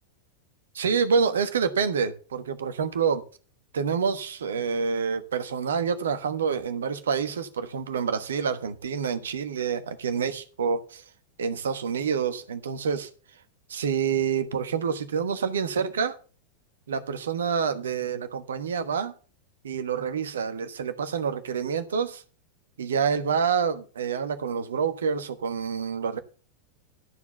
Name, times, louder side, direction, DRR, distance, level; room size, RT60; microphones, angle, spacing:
voice 1, 0.7-3.2 3.7-11.0 11.4-13.1 13.7-16.1 16.9-19.1 19.6-22.2 22.8-26.2, right 6 dB, 65° right, 1.2 m, -27 dB
13.0 x 4.8 x 6.9 m
figure-of-eight pair, 90°, 0 cm